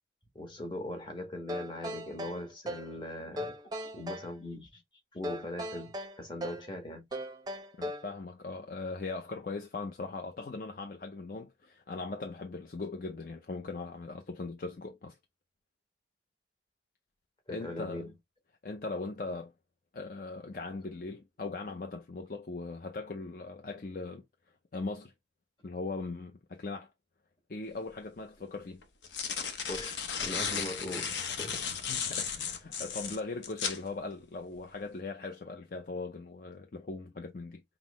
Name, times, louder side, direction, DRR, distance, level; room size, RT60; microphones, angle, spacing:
voice 1, 0.3-4.8 5.1-7.1 17.5-18.1 29.7-31.1 31.4-31.7, left 1 dB, 25° left, 1.2 m, -40 dB
sound 1, 1.5-2.9 3.4-4.3 5.2-6.7 7.1-8.1, equal, 20° right, 0.6 m, -38 dB
voice 2, 7.8-15.2 17.5-18.1 18.6-19.5 19.9-24.2 24.7-25.1 25.6-26.9 27.5-28.8 31.9-37.6, left 3 dB, 50° left, 0.5 m, -39 dB
sound 2, 27.7-27.8 28.8-33.8, left 7 dB, 85° left, 0.7 m, -35 dB
5.7 x 2.1 x 3.0 m
head